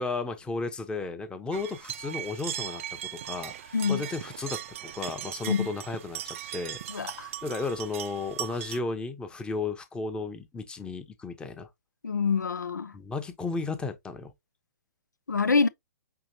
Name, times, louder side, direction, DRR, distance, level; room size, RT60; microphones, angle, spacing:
voice 1, 0.0-2.8 3.1-7.1 7.4-11.7 12.9-14.3, left 3 dB, 10° left, 0.8 m, -34 dB
sound 1, 1.5-8.8, right 11 dB, 50° right, 0.5 m, -38 dB
voice 2, 3.7-4.0 5.5-5.7 6.9-7.3 12.0-12.9 15.3-15.7, left 5 dB, 90° left, 0.5 m, -26 dB
5.7 x 2.9 x 2.6 m
figure-of-eight pair, 120°, 9 cm